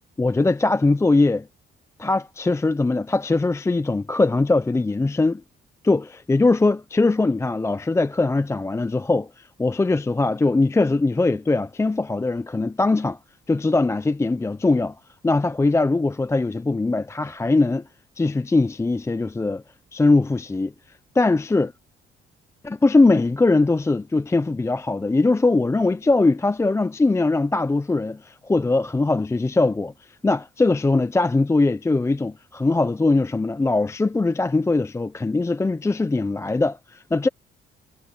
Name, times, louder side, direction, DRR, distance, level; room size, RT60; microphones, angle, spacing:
voice 1, 0.2-1.5 2.0-5.4 5.8-13.2 13.5-14.9 15.2-17.8 18.2-19.6 19.9-20.7 21.2-21.7 22.6-29.9 30.2-37.3, left 3 dB, 15° left, 0.5 m, -21 dB
cardioid pair, 90°, 20 cm